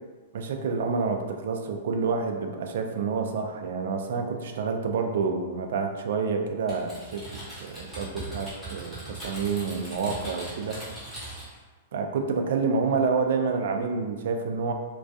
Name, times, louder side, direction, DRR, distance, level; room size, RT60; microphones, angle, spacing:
voice 1, 0.3-7.2 7.6-10.8 11.9-14.7, right 5 dB, 65° right, 4 dB, 0.3 m, -28 dB
Typing, 6.7-11.6, right 1 dB, ahead, 0.8 m, -40 dB
2.3 x 2.2 x 2.6 m, 1.3 s
supercardioid pair, 165°, 0 cm